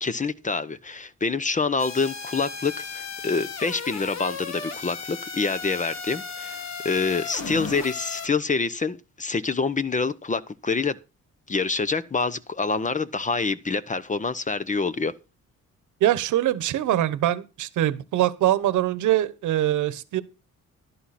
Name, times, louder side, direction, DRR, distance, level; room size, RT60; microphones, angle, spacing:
voice 1, 0.0-11.0 11.5-15.1, left 4 dB, 25° left, 0.9 m, -26 dB
sound 1, 1.8-8.3, left 5 dB, 60° left, 2.1 m, -35 dB
voice 2, 16.0-20.2, right 13 dB, 80° right, 1.2 m, -23 dB
11.5 x 11.0 x 4.2 m
cardioid pair, 90°, 30 cm